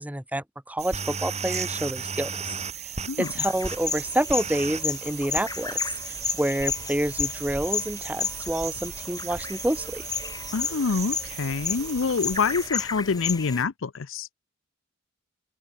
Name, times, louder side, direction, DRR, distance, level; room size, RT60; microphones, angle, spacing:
voice 1, 0.0-2.6 3.2-5.8 6.4-10.0, right 1 dB, 5° right, 1.1 m, -28 dB
sound 1, 0.8-12.7, right 6 dB, 35° right, 2.6 m, -36 dB
sound 2, 3.2-13.6, left 5 dB, 20° left, 1.6 m, -33 dB
voice 2, 10.5-14.3, left 5 dB, 65° left, 0.6 m, -26 dB
open air
head